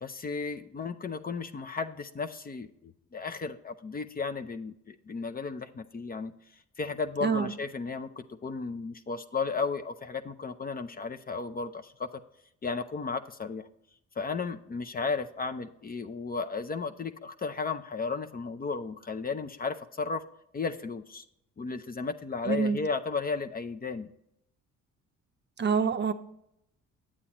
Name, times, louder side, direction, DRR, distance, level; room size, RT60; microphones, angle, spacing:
voice 1, 0.0-6.3 6.8-12.2 12.6-13.7 14.2-20.2 20.5-21.2 21.6-24.1, left 4 dB, 30° left, 9 dB, 0.5 m, -34 dB
voice 2, 7.2-7.5 22.5-22.8 25.6-26.1, right 5 dB, 35° right, 9 dB, 0.6 m, -26 dB
8.6 x 8.5 x 3.0 m, 0.78 s
cardioid pair, 90°, 30 cm